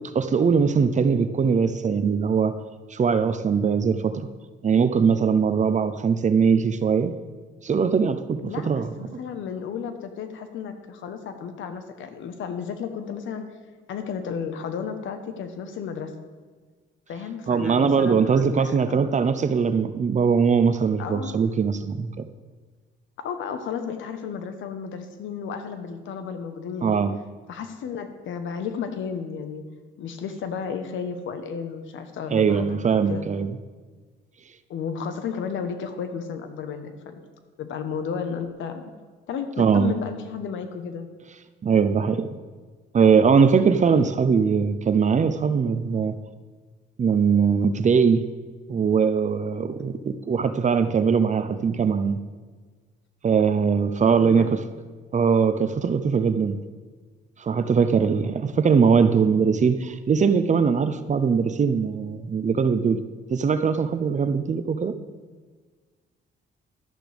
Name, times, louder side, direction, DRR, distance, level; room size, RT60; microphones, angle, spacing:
voice 1, 0.0-2.5 2.9-4.3 4.6-7.1 7.6-8.9 17.5-22.1 26.8-27.1 32.3-33.5 39.6-39.9 41.6-42.3 42.9-46.2 47.0-48.2 48.7-52.2 53.2-54.6 55.1-56.6 57.4-63.0 63.3-64.9, right 6 dB, 35° right, 11 dB, 0.7 m, -21 dB
voice 2, 8.4-13.5 13.9-16.1 17.1-19.1 21.0-21.4 23.2-27.0 27.5-29.6 30.0-32.8 33.1-33.3 34.7-37.2 37.6-38.9 39.3-41.1 43.9-44.1 54.1-54.5, left 6 dB, 80° left, 8 dB, 1.1 m, -33 dB
12.5 x 11.0 x 3.5 m, 1.4 s
cardioid pair, 90°, 20 cm